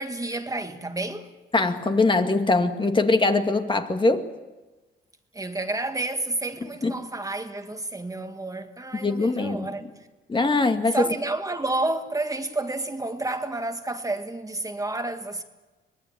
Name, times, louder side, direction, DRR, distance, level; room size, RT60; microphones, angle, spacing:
voice 1, 0.0-1.3 5.3-9.9 10.9-15.4, right 2 dB, 15° right, 1.8 m, -30 dB
voice 2, 1.5-4.3 6.8-6.9 8.9-9.7 10.3-11.1, left 3 dB, 25° left, 2.1 m, -22 dB
24.0 x 20.0 x 8.9 m
cardioid pair, 90°, 20 cm